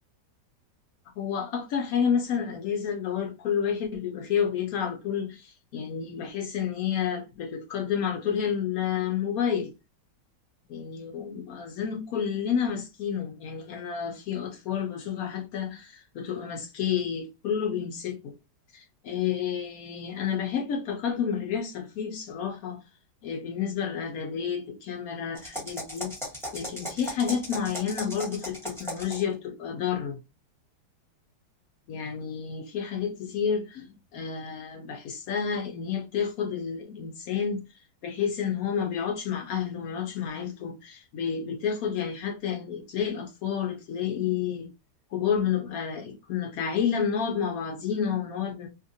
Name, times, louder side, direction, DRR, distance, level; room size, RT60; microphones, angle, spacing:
voice 1, 1.2-9.7 10.7-18.3 18.7-22.8 23.2-26.1 26.5-30.2 31.9-37.6 38.0-44.7 45.1-48.7, left 7 dB, 70° left, 0.8 m, -30 dB
sound 1, 25.4-29.3, equal, ahead, 0.8 m, -37 dB
2.8 x 2.4 x 2.6 m
omnidirectional pair, 1.9 m